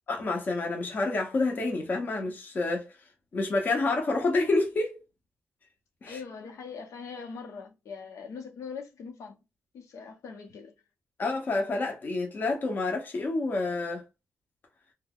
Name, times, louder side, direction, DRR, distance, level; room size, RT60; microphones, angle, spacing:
voice 1, 0.1-2.9 3.3-5.0 6.0-6.2 11.2-14.0, left 3 dB, 35° left, 0.7 m, -28 dB
voice 2, 6.0-9.4 9.7-10.7, left 5 dB, 90° left, 0.8 m, -42 dB
2.8 x 2.2 x 3.5 m
wide cardioid pair, 170°, 5 cm